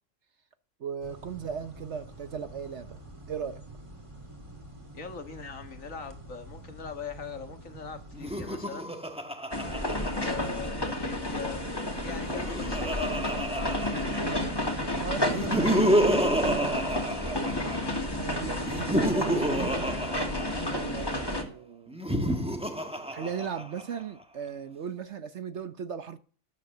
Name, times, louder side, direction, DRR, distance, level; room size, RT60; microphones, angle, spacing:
voice 1, 0.8-3.0 3.3-3.6 15.0-17.6 18.2-19.7 20.7-22.0 23.1-26.2, right 7 dB, 55° right, 1.0 m, -37 dB
sound 1, 1.0-8.4, right 1 dB, 20° right, 2.5 m, -47 dB
voice 2, 4.9-8.9 9.9-11.6 12.0-13.8, left 5 dB, 60° left, 1.9 m, -41 dB
Laughter, 8.1-10.9 12.0-14.6 15.2-18.0 18.6-21.0 21.9-24.0, right 1 dB, 5° right, 1.1 m, -29 dB
sound 2, 9.5-21.4, left 1 dB, 15° left, 2.2 m, -31 dB
12.5 x 8.2 x 7.0 m
omnidirectional pair, 1.6 m